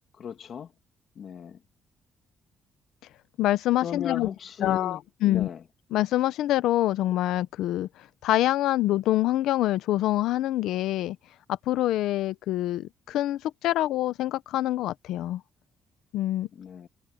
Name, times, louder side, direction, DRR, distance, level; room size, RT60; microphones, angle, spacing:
voice 1, 0.2-0.7 1.2-1.6 3.8-5.6 16.6-16.9, left 8 dB, 50° left, 2.1 m, -36 dB
voice 2, 3.4-4.3 4.6-5.5 5.9-11.2 11.7-15.4 16.1-16.5, left 14 dB, 90° left, 0.8 m, -26 dB
cardioid pair, 125°, 0 cm